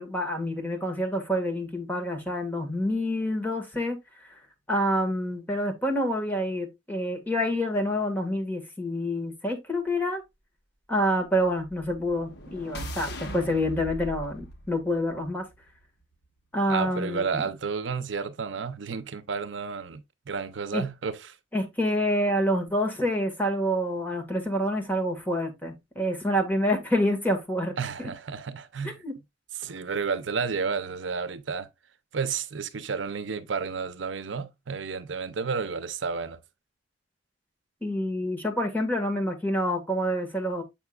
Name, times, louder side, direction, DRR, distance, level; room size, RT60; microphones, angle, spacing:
voice 1, 0.0-4.0 4.7-10.2 10.9-15.5 16.5-17.4 20.7-20.8 21.5-28.1 28.8-29.1 37.8-40.6, equal, 10° left, 1.6 m, -27 dB
sound 1, 11.7-15.8, equal, 65° left, 1.3 m, -40 dB
voice 2, 16.7-20.0 20.3-21.4 27.8-29.0 29.6-31.7 32.1-36.4, right 5 dB, 85° right, 0.6 m, -31 dB
7.3 x 5.8 x 2.3 m
head